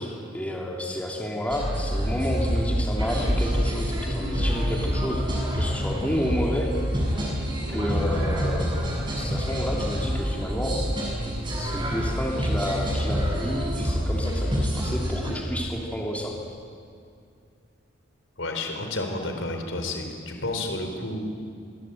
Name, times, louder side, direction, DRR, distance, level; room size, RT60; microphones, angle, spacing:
voice 1, 0.0-6.7 7.7-8.7 9.2-10.7 11.6-16.3, equal, 5° left, -2 dB, 3.0 m, -30 dB
sound 1, 1.5-15.3, equal, 25° right, 7.2 m, -27 dB
voice 2, 18.4-21.2, left 2 dB, 70° left, 4 dB, 4.4 m, -31 dB
26.5 x 22.0 x 9.2 m, 2.4 s
head